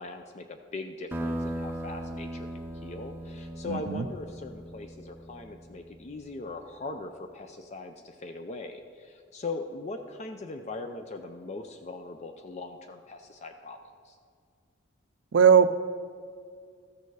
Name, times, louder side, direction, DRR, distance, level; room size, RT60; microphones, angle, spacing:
voice 1, 0.0-13.8 14.1-14.2, left 3 dB, 35° left, 6 dB, 0.4 m, -40 dB
sound 1, 1.1-6.2, right 1 dB, 10° right, 0.6 m, -38 dB
voice 2, 3.7-4.0 15.3-15.7, right 7 dB, 65° right, 13 dB, 0.4 m, -19 dB
13.5 x 6.8 x 4.7 m, 2.2 s
head